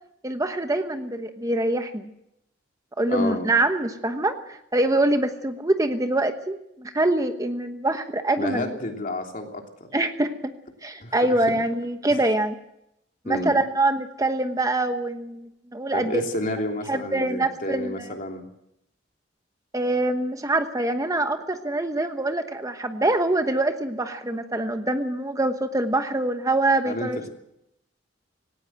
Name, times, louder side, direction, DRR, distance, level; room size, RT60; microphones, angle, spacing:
voice 1, 0.2-2.1 3.0-8.7 9.9-10.5 10.8-12.5 13.2-16.2 16.9-18.2 19.7-27.3, right 2 dB, 20° right, 7 dB, 1.1 m, -24 dB
voice 2, 3.1-3.5 8.4-9.9 11.0-11.1 12.1-12.2 13.2-13.6 15.9-18.4 26.8-27.3, left 1 dB, 45° left, 3 dB, 3.2 m, -30 dB
18.5 x 18.0 x 7.8 m, 0.80 s
head